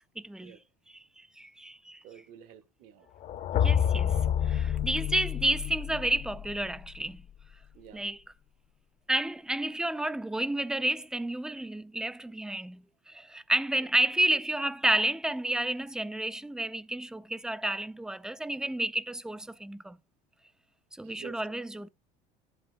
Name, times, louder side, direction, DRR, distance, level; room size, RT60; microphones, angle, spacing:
voice 1, 0.2-0.6 0.9-2.0 3.5-7.2 7.9-8.2 9.1-20.0 21.0-21.9, right 1 dB, 5° right, 0.5 m, -31 dB
voice 2, 2.0-3.1 4.5-5.0 7.7-8.0 21.0-21.8, right 9 dB, 70° right, 1.4 m, -51 dB
sound 1, 3.2-7.2, left 9 dB, 50° left, 0.8 m, -29 dB
10.5 x 8.9 x 2.3 m
cardioid pair, 120°, 16 cm